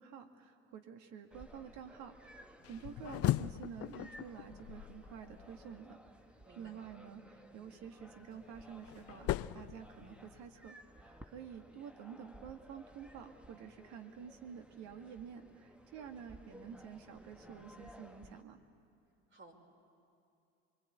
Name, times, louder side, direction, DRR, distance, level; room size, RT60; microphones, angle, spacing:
voice 1, 0.0-6.0 6.6-18.6, right 7 dB, 65° right, 6 dB, 2.1 m, -50 dB
sound 1, 1.3-18.4, equal, 5° right, 1.4 m, -58 dB
sound 2, 2.6-5.8 8.0-10.6, left 14 dB, 50° left, 0.6 m, -39 dB
voice 2, 6.4-6.8 19.3-19.5, right 2 dB, 40° right, 2 dB, 4.8 m, -56 dB
24.5 x 22.5 x 8.5 m, 2.7 s
hypercardioid pair, 70°, 31 cm